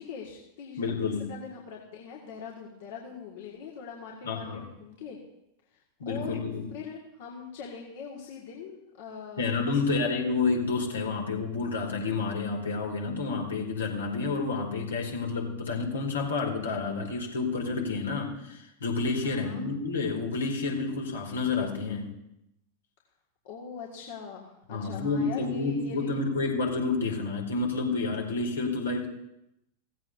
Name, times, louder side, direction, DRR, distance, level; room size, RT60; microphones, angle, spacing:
voice 1, 0.0-5.2 5.7-6.4 6.7-10.1 19.2-19.6 23.4-26.1, left 6 dB, 50° left, -2 dB, 1.8 m, -42 dB
voice 2, 0.8-1.3 4.3-4.7 6.0-6.7 9.4-22.2 24.7-29.1, left 4 dB, 70° left, 1 dB, 2.4 m, -29 dB
16.0 x 15.0 x 2.7 m, 0.84 s
figure-of-eight pair, 90°, 0 cm